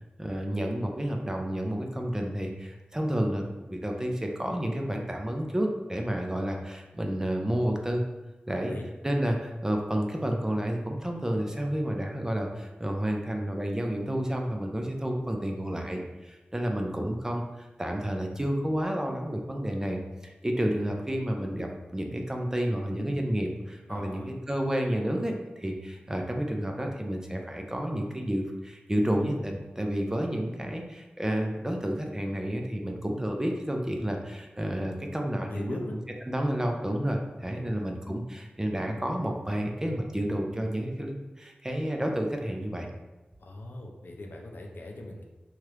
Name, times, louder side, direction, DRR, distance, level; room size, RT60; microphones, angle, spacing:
voice 1, 0.2-8.0 8.5-8.7 9.0-35.8 36.3-42.9, right 1 dB, 15° right, 2 dB, 0.4 m, -30 dB
voice 2, 8.5-8.9 23.9-24.3 35.5-35.9 37.5-37.9 43.4-45.2, left 1 dB, 70° left, 1 dB, 0.4 m, -40 dB
2.9 x 2.3 x 3.2 m, 1.1 s
wide cardioid pair, 70°, 3 cm